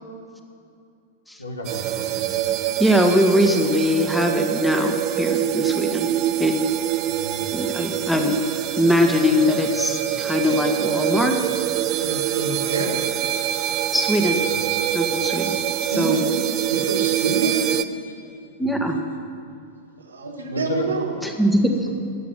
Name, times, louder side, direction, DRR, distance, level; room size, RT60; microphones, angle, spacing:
voice 1, 1.4-2.3 7.1-7.5 14.5-14.6 15.1-15.2 16.8-16.9 18.6-18.8 20.2-20.9, left 2 dB, 85° left, 2 dB, 1.9 m, -34 dB
sound 1, 1.6-17.8, right 12 dB, 40° right, 0.6 m, -25 dB
voice 2, 2.8-6.1 6.4-6.5 7.5-8.3 8.8-11.4 13.9-14.4 14.9-15.6 16.0-16.2 18.6-19.0 21.2-21.8, left 1 dB, 5° left, 3 dB, 1.5 m, -21 dB
voice 3, 12.0-13.0 15.4-15.6 15.9-17.6 20.0-21.2, right 3 dB, 75° right, 2 dB, 1.9 m, -27 dB
12.5 x 8.5 x 9.1 m, 2.4 s
figure-of-eight pair, 95°, 0 cm